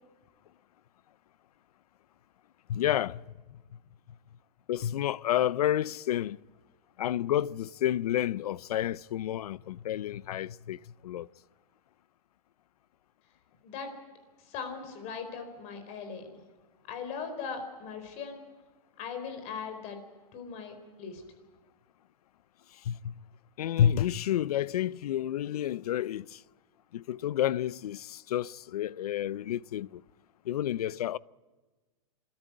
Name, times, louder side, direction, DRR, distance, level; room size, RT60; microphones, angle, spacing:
voice 1, 2.7-3.2 4.7-6.4 7.0-11.3 22.7-23.2 23.6-26.4 26.9-30.0 30.4-31.2, left 11 dB, 80° left, 0.6 m, -30 dB
voice 2, 14.4-16.3 16.9-18.4 19.0-20.0 20.3-21.2, left 6 dB, 35° left, 4.4 m, -39 dB
26.5 x 13.5 x 9.4 m
hypercardioid pair, 150°, 20 cm